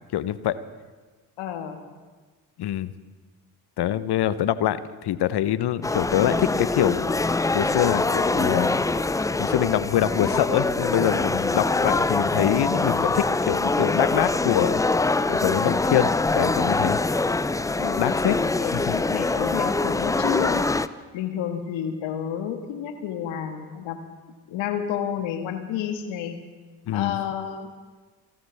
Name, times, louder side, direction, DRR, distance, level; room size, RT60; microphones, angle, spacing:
voice 1, 0.1-0.6 2.6-2.9 3.8-8.8 9.4-14.8 15.3-17.0 18.0-18.9 26.9-27.2, left 11 dB, 55° left, 15 dB, 1.0 m, -25 dB
voice 2, 1.4-1.8 17.8-18.1 18.6-20.7 21.1-24.0 24.5-26.4 26.9-27.7, left 9 dB, 70° left, 6 dB, 1.8 m, -30 dB
sound 1, 5.8-20.9, left 3 dB, 10° left, 0.4 m, -24 dB
29.5 x 13.0 x 3.5 m, 1.4 s
hypercardioid pair, 45°, 48 cm